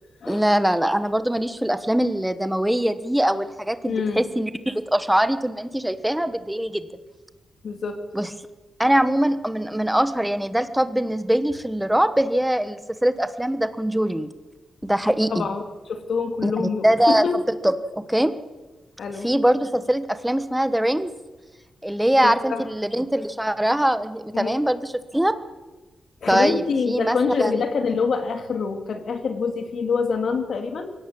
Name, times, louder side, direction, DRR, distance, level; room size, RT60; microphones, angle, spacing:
voice 1, 0.3-6.9 8.1-8.3 8.8-14.3 14.8-15.5 16.4-17.2 17.6-18.3 19.2-21.1 21.8-25.3 26.3-27.6, right 1 dB, 5° right, 11 dB, 1.2 m, -22 dB
voice 2, 3.8-4.2 7.6-8.0 15.3-15.6 15.9-17.4 19.0-19.3 22.2-22.6 24.3-24.6 26.2-30.9, left 5 dB, 60° left, 6 dB, 3.1 m, -25 dB
23.0 x 17.5 x 8.7 m, 1.2 s
wide cardioid pair, 140°, 0 cm